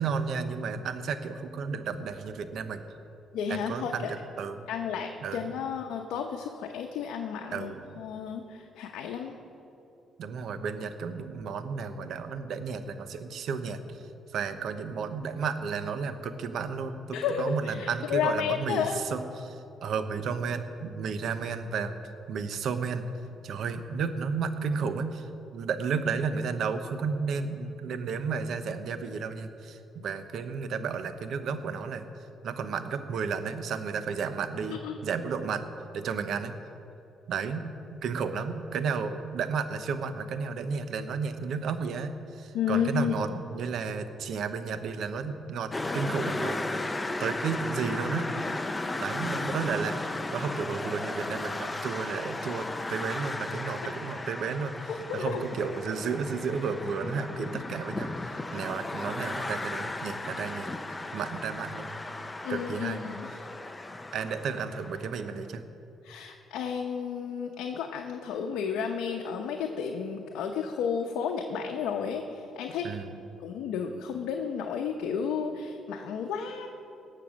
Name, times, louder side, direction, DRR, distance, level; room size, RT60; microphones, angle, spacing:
voice 1, 0.0-2.8 3.5-4.1 4.4-4.6 5.2-5.4 7.5-8.0 10.2-14.0 14.3-22.0 22.3-23.0 23.4-32.1 32.4-36.5 37.3-48.3 49.0-50.0 50.3-60.7 61.1-61.9 62.5-63.1 64.1-65.6 72.8-73.2, right 5 dB, 70° right, 10 dB, 0.9 m, -33 dB
voice 2, 3.3-4.1 4.7-7.7 8.0-9.3 17.1-19.0 34.7-35.0 42.5-43.4 55.1-55.4 62.4-63.3 66.0-72.9 73.4-76.7, left 7 dB, 85° left, 2 dB, 0.8 m, -32 dB
sound 1, 45.7-65.3, left 2 dB, 20° left, 0.7 m, -35 dB
18.0 x 6.9 x 6.3 m, 2.9 s
cardioid pair, 90°, 0 cm